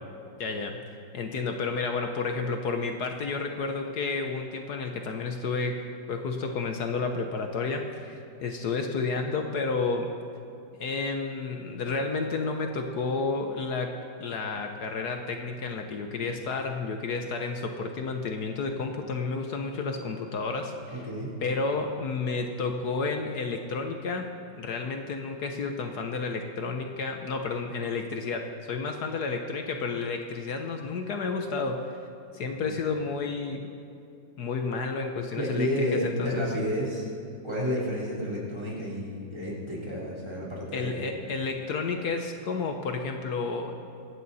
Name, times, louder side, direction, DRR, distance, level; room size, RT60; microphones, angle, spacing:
voice 1, 0.4-0.8 1.1-10.1 10.8-21.0 21.4-24.3 24.5-32.0 32.3-33.7 34.4-36.5 40.7-43.8, left 4 dB, 65° left, 4 dB, 1.4 m, -31 dB
voice 2, 20.9-21.3 32.4-32.7 35.3-37.1 37.4-40.9, equal, 15° right, -6 dB, 3.5 m, -31 dB
25.0 x 9.5 x 4.2 m, 2.7 s
omnidirectional pair, 1.9 m